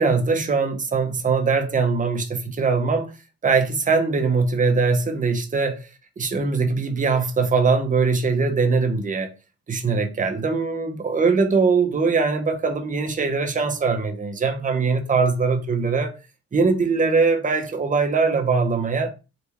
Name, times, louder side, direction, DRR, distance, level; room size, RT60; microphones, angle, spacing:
voice 1, 0.0-3.1 3.4-5.9 6.2-9.3 9.7-16.1 16.5-19.1, right 4 dB, 25° right, 0.7 m, -21 dB
3.5 x 2.4 x 2.9 m
cardioid pair, 90°, 30 cm